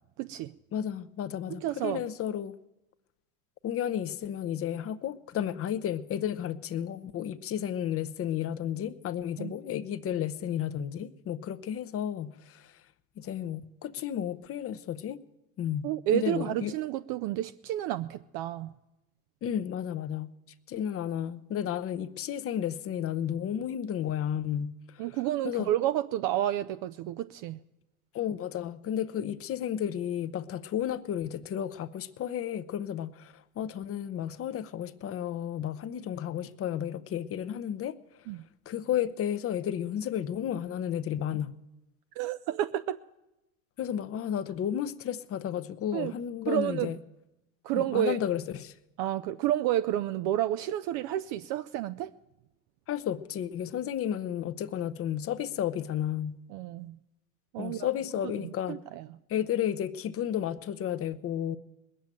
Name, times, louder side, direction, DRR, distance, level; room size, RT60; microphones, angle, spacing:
voice 1, 0.2-0.5 1.5-2.0 9.4-9.5 15.8-18.7 25.0-27.6 38.3-38.5 42.2-43.0 45.9-46.1 46.5-46.9 47.6-48.2 49.0-52.1 56.5-57.0 57.5-57.9 58.2-59.1, right 13 dB, 50° right, 0.5 m, -30 dB
voice 2, 0.7-2.6 3.6-12.7 13.2-15.2 15.6-16.8 19.4-20.3 20.7-25.0 25.4-25.7 28.1-38.0 38.7-41.6 43.8-47.0 47.7-48.7 52.9-56.4 57.6-58.8 59.3-61.6, left 10 dB, 30° left, 0.7 m, -32 dB
20.0 x 7.7 x 9.0 m
supercardioid pair, 105°, 44 cm